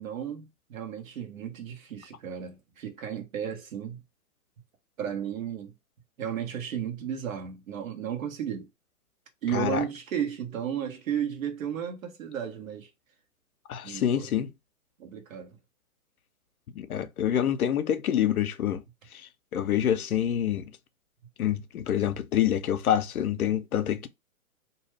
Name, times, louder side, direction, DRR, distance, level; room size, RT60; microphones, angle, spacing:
voice 1, 0.0-4.0 5.0-5.7 6.2-8.7 9.4-12.9 13.8-14.3 15.0-15.6, right 9 dB, 65° right, 1.3 m, -34 dB
voice 2, 9.5-9.8 13.7-14.5 16.8-18.8 19.5-20.7 21.4-24.1, left 10 dB, 85° left, 0.6 m, -26 dB
2.7 x 2.4 x 3.2 m
hypercardioid pair, 130°, 43 cm